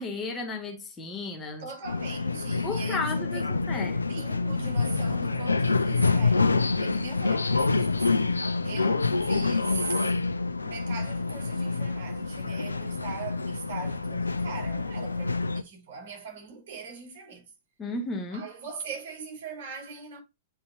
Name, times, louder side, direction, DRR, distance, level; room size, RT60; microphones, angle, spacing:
voice 1, 0.0-1.7 2.6-3.4 3.7-4.0 17.8-18.5, left 3 dB, 15° left, 2.0 m, -33 dB
voice 2, 1.6-10.1 10.6-17.5 18.3-20.2, right 5 dB, 50° right, 5.1 m, -41 dB
sound 1, 1.8-15.6, left 3 dB, 80° left, 0.6 m, -27 dB
10.0 x 5.5 x 2.6 m
figure-of-eight pair, 105°, 0 cm